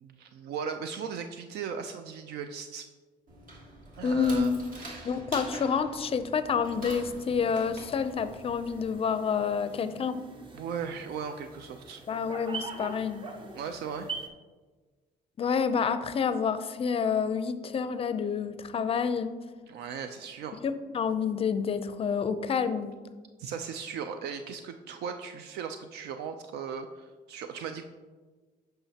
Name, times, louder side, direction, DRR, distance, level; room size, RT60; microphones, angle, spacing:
voice 1, 0.0-2.9 4.0-5.2 10.5-12.0 13.5-14.1 19.7-20.6 23.4-27.8, right 6 dB, 75° right, 7 dB, 0.5 m, -37 dB
sound 1, 3.3-8.9, right 1 dB, 55° right, 1.8 m, -45 dB
voice 2, 4.0-4.6 5.0-10.2 12.1-13.2 15.4-19.3 20.6-22.9, left 6 dB, 35° left, 12 dB, 0.5 m, -28 dB
sound 2, 6.7-14.3, right 4 dB, 30° right, 0.8 m, -44 dB
8.8 x 5.7 x 2.8 m, 1.4 s
cardioid pair, 110°, 17 cm